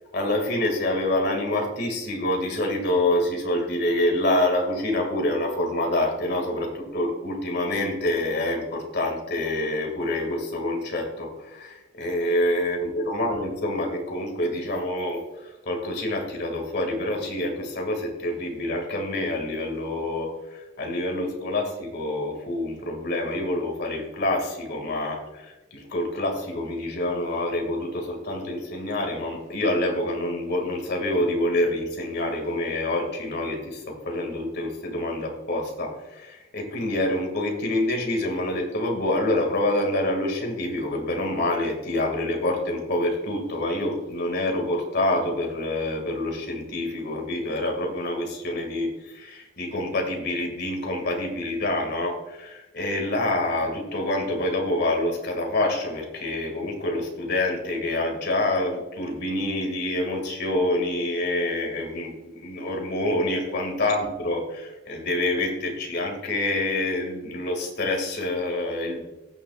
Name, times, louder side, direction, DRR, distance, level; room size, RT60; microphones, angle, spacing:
voice 1, 0.1-69.0, left 1 dB, 60° left, 2 dB, 2.2 m, -27 dB
18.5 x 7.0 x 2.4 m, 1.1 s
head